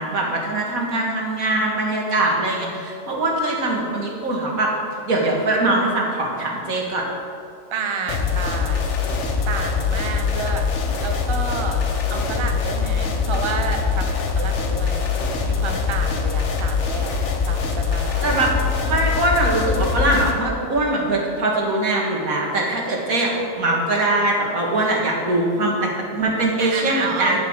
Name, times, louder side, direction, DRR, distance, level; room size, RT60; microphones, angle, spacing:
voice 1, 0.0-4.7 5.1-7.0 18.2-18.5 18.8-23.3 23.6-27.4, right 2 dB, 85° right, -1 dB, 2.3 m, -22 dB
voice 2, 7.7-10.7 11.0-11.8 12.1-15.1 15.4-17.2 17.4-18.4 26.6-27.4, right 4 dB, 25° right, 4 dB, 0.8 m, -30 dB
sound 1, 8.1-20.3, left 5 dB, 60° left, 1.3 m, -23 dB
8.6 x 7.1 x 8.8 m, 2.4 s
omnidirectional pair, 1.4 m